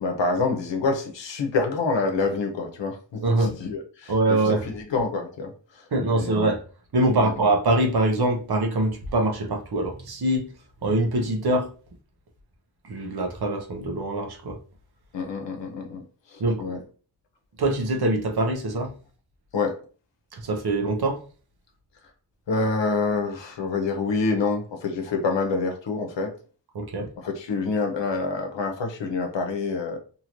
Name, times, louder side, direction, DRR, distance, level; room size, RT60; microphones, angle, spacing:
voice 1, 0.0-5.8 6.1-6.4 7.2-7.3 15.1-16.0 16.3-16.8 19.5-19.8 22.5-26.3 27.2-30.0, left 4 dB, 80° left, 0.8 m, -27 dB
voice 2, 3.2-3.6 4.1-4.7 5.9-6.6 6.9-10.5 10.8-11.7 12.9-14.6 16.4-16.6 17.6-18.9 20.3-21.2 26.7-27.1, right 2 dB, 60° right, 0.9 m, -23 dB
2.8 x 2.6 x 3.0 m
wide cardioid pair, 95°, 43 cm